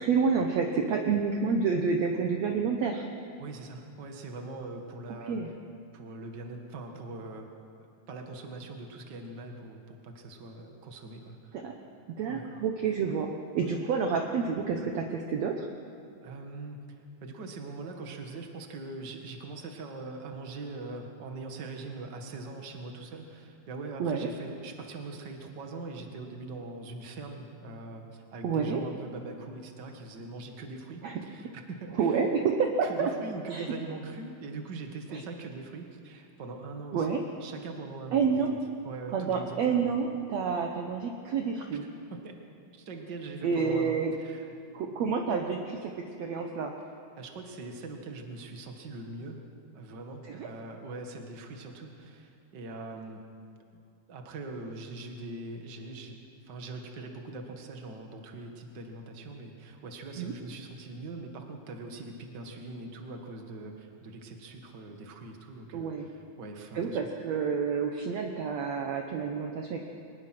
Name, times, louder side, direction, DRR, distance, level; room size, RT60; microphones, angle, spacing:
voice 1, 0.0-3.0 5.3-5.5 11.5-11.8 12.2-13.3 13.5-15.7 24.0-24.3 28.4-28.8 31.0-31.2 32.0-33.1 33.5-33.7 35.1-35.2 36.9-37.2 38.1-38.5 39.1-41.9 43.4-44.1 44.7-46.7 50.3-50.5 60.2-60.3 65.7-66.1 66.7-69.8, right 5 dB, 75° right, 3 dB, 1.6 m, -29 dB
voice 2, 3.4-5.4 5.9-7.5 7.8-11.7 12.3-12.5 13.6-13.8 16.2-16.8 17.2-32.2 32.8-38.6 38.8-39.9 42.1-42.3 42.7-44.5 47.2-49.4 49.7-53.2 54.1-56.2 56.4-67.0, right 3 dB, 40° right, 3 dB, 1.6 m, -42 dB
23.5 x 20.0 x 6.1 m, 2.5 s
omnidirectional pair, 4.5 m